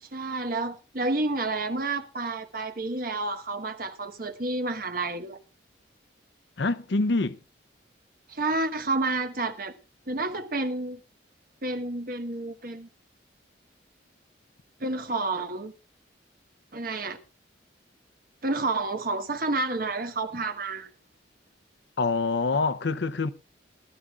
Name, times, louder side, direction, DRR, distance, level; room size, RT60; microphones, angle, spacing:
voice 1, 0.0-5.4 8.3-9.7 10.1-11.0 11.6-12.9 14.8-15.7 16.7-17.2 18.4-20.9, right 2 dB, 50° right, 1.2 m, -30 dB
voice 2, 6.6-7.4 22.0-23.3, left 3 dB, 65° left, 0.6 m, -25 dB
20.0 x 12.5 x 2.4 m
head